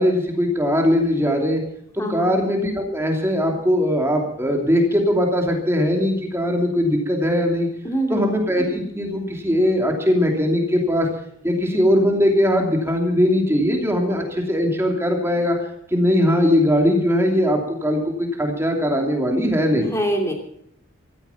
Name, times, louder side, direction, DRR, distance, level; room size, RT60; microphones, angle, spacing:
voice 1, 0.0-1.6 1.9-7.7 8.1-11.1 11.4-15.5 15.9-19.9, equal, 10° right, 2 dB, 2.8 m, -20 dB
voice 2, 2.0-2.3 7.8-8.3 19.9-20.3, right 1 dB, 15° left, 2 dB, 2.9 m, -24 dB
15.5 x 14.0 x 5.8 m, 0.71 s
head